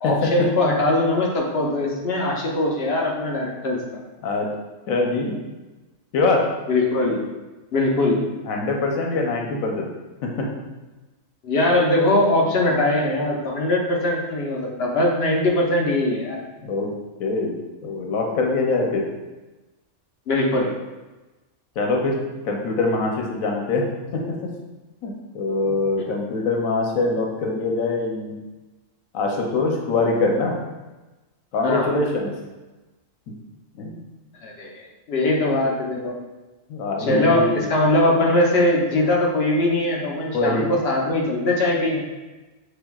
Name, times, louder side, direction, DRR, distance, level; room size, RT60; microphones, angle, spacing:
voice 1, 0.0-3.8 6.7-7.3 7.7-8.2 11.4-16.4 20.3-20.7 31.6-31.9 34.4-34.7 35.1-36.1 37.0-42.0, left 1 dB, 55° left, -1 dB, 0.9 m, -21 dB
voice 2, 4.9-5.3 6.1-6.4 8.5-9.9 10.2-10.5 16.6-16.9 17.2-17.5 17.8-19.1 21.8-22.2 22.4-23.9 24.1-24.5 25.0-28.3 29.1-30.6 31.5-32.3 33.8-34.0 36.7-37.5 40.3-40.7, left 3 dB, 90° left, 1 dB, 1.1 m, -23 dB
5.3 x 3.4 x 2.3 m, 1.1 s
omnidirectional pair, 1.4 m